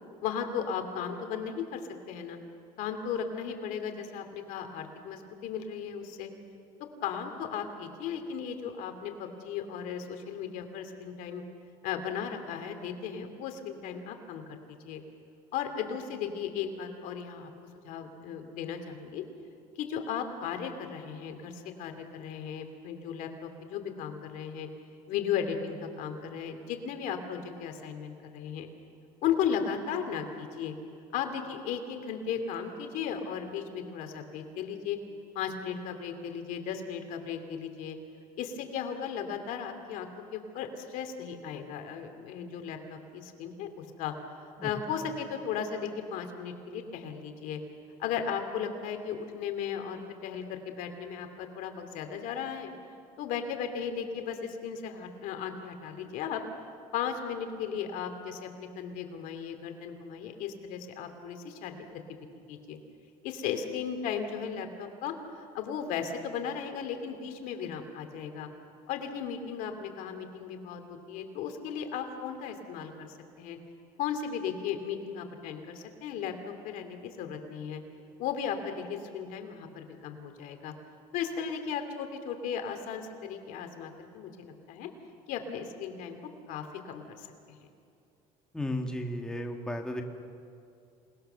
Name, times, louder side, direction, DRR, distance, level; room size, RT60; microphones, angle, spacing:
voice 1, 0.2-1.8 2.1-2.4 2.8-6.3 7.0-11.4 11.8-14.6 14.9-15.0 15.5-17.5 17.8-19.2 19.8-21.5 21.8-24.7 25.1-28.7 29.2-30.7 31.1-35.0 35.3-38.0 38.4-44.1 44.6-47.6 48.0-52.7 53.2-56.4 56.9-61.9 62.2-62.8 63.2-68.5 68.9-73.6 74.0-77.8 78.2-80.7 81.1-84.9 85.3-86.2 86.5-87.7, left 7 dB, 70° left, 6 dB, 2.7 m, -36 dB
voice 2, 88.5-90.0, left 1 dB, 5° left, 2 dB, 1.9 m, -34 dB
27.5 x 20.0 x 6.9 m, 2.5 s
cardioid pair, 125°, 14 cm